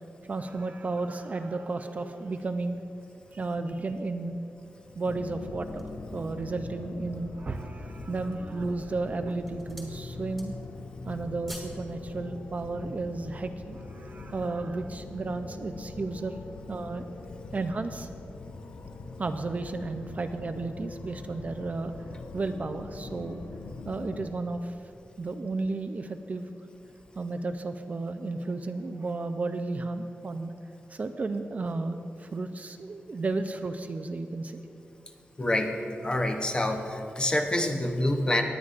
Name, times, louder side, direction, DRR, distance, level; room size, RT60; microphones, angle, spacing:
voice 1, 0.3-2.8 3.3-4.4 5.0-10.5 11.1-16.4 16.7-17.1 17.5-18.1 19.2-21.9 22.3-23.4 23.9-24.8 25.2-26.5 27.2-30.5 30.9-34.6, right 3 dB, 35° right, 7 dB, 0.4 m, -33 dB
sound 1, 5.1-24.3, left 3 dB, 70° left, 0.5 m, -42 dB
sound 2, 5.3-6.1 6.7-6.8 7.3-7.8 8.5-8.9 9.2-10.0 10.3-10.8 11.1-11.8 12.1-12.3, equal, 5° left, 2.0 m, -47 dB
voice 2, 35.4-35.7 36.0-38.4, left 1 dB, 25° left, 4 dB, 0.7 m, -26 dB
19.0 x 9.8 x 2.5 m, 2.7 s
wide cardioid pair, 170°, 4 cm